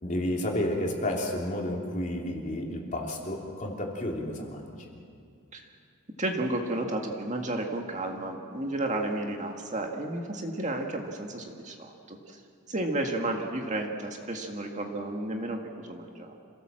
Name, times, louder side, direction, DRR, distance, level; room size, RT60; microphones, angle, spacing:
voice 1, 0.0-4.9, left 1 dB, 35° left, -1 dB, 3.2 m, -31 dB
voice 2, 6.2-12.4 12.7-16.4, right 1 dB, 35° right, 2 dB, 1.8 m, -32 dB
27.0 x 17.5 x 7.5 m, 2.4 s
head